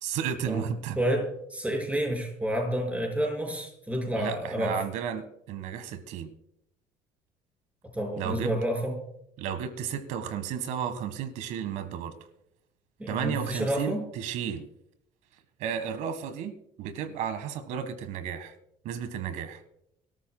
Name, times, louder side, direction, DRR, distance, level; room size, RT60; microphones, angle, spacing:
voice 1, 0.0-1.0 4.1-6.3 8.2-8.5 9.4-12.1 13.1-14.7 15.6-16.5 16.8-18.5 18.8-19.6, right 8 dB, 75° right, 12 dB, 1.6 m, -33 dB
voice 2, 1.0-4.8 7.9-9.0 13.0-14.0, equal, 10° right, 2 dB, 5.5 m, -29 dB
24.0 x 13.0 x 2.3 m, 0.78 s
cardioid pair, 95°, 13 cm